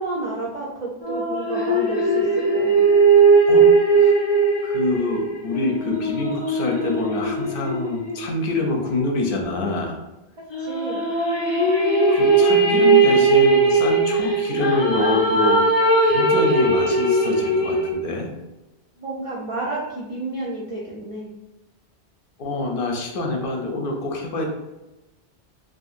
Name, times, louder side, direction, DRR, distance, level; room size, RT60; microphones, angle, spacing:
voice 1, 0.0-2.8 10.6-11.0 19.0-21.3, right 2 dB, 50° right, -5 dB, 0.4 m, -31 dB
sound 1, 1.0-8.7 10.5-17.9, right 3 dB, 40° left, 0.3 m, -19 dB
voice 2, 4.6-10.0 12.1-15.7 16.0-18.3 22.4-24.4, left 2 dB, 60° left, 1 dB, 0.7 m, -26 dB
2.7 x 2.5 x 2.4 m, 1.0 s
omnidirectional pair, 1.1 m